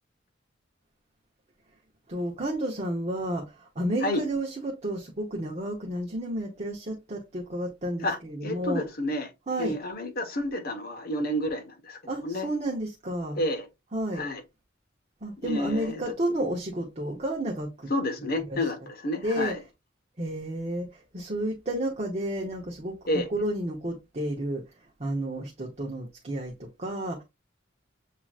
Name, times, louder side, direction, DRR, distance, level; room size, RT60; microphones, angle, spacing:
voice 1, 2.1-8.8 9.5-9.8 12.1-13.4 13.9-14.2 15.2-17.9 18.5-18.6 19.2-19.5 20.2-23.0 23.3-24.6 25.0-27.2, right 1 dB, 35° right, 0.9 m, -31 dB
voice 2, 8.0-9.3 9.6-12.5 13.3-13.7 14.1-14.4 15.4-16.0 17.9-19.6 23.1-23.3, left 1 dB, 50° left, 1.2 m, -30 dB
7.3 x 2.9 x 2.4 m
head